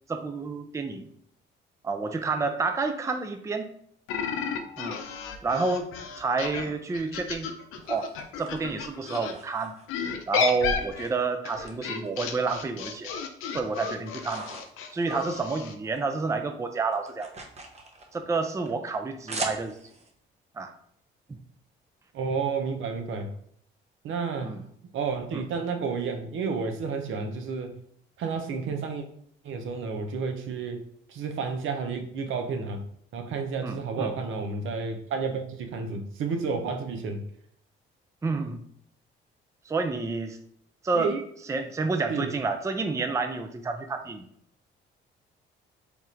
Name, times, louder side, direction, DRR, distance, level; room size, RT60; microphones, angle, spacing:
voice 1, 0.1-1.1 1.8-3.7 4.8-5.0 5.4-5.9 6.2-7.5 7.9-8.1 8.4-9.8 10.3-13.1 13.5-14.5 14.9-17.3 18.1-19.8 20.6-20.7 21.3-21.4 24.4-24.6 25.3-25.4 33.6-34.1 38.2-38.6 39.7-40.4 40.8-41.1 41.5-44.3, right 4 dB, 15° right, 7 dB, 0.4 m, -29 dB
sound 1, 4.1-9.3 9.9-15.7, left 6 dB, 90° left, 0.5 m, -33 dB
sound 2, 7.3-10.1 10.6-11.7 12.0-13.1 13.4-16.0 16.3-20.1, right 3 dB, 35° right, 0.8 m, -42 dB
voice 2, 22.1-23.3 24.0-24.6 24.9-27.7 28.2-29.0 29.4-30.8 31.1-32.8 33.1-37.2 40.9-41.2 42.1-42.3, right 5 dB, 75° right, 4 dB, 0.7 m, -31 dB
3.5 x 2.4 x 4.3 m, 0.65 s
cardioid pair, 90°, 21 cm